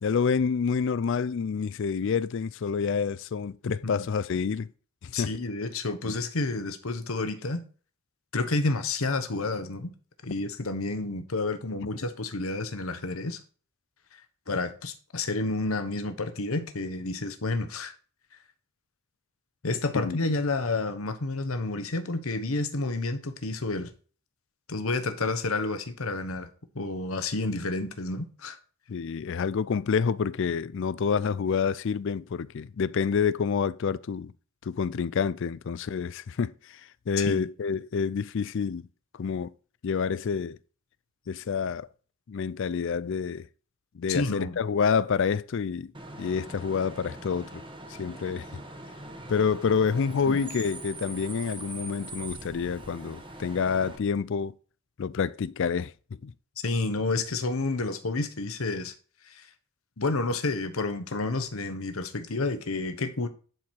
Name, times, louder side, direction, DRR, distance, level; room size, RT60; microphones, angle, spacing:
voice 1, 0.0-4.7 5.0-5.3 6.0-6.2 19.9-20.2 28.9-34.3 34.6-38.9 39.1-39.5 39.8-40.6 41.3-41.9 42.3-43.5 43.9-45.9 46.2-47.6 47.9-48.5 49.3-54.5 55.0-55.9 56.2-56.3, left 6 dB, 60° left, 0.4 m, -28 dB
voice 2, 5.1-7.6 8.3-9.9 10.2-13.4 14.5-17.9 19.6-23.9 24.7-26.5 26.7-28.6 37.2-37.5 44.1-44.6 50.3-50.4 56.6-58.9 59.3-59.5 60.0-63.3, left 3 dB, 75° left, 1.1 m, -30 dB
Bus / Idling / Screech, 45.9-54.0, right 2 dB, 25° right, 1.3 m, -42 dB
11.0 x 4.8 x 4.5 m
head